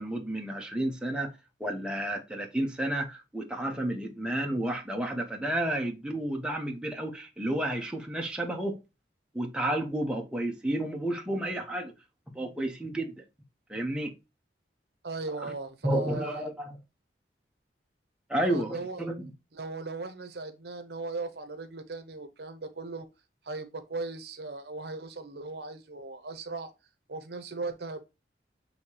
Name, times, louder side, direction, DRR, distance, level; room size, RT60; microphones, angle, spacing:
voice 1, 0.0-1.3 1.6-8.8 9.3-11.9 12.3-13.2 13.7-14.1 15.4-15.5 15.8-16.8 18.3-19.3, right 1 dB, 5° right, 0.7 m, -31 dB
voice 2, 15.0-16.4 18.5-19.1 19.5-23.1 23.4-26.7 27.1-28.0, right 3 dB, 65° right, 0.8 m, -38 dB
6.4 x 2.8 x 2.8 m
head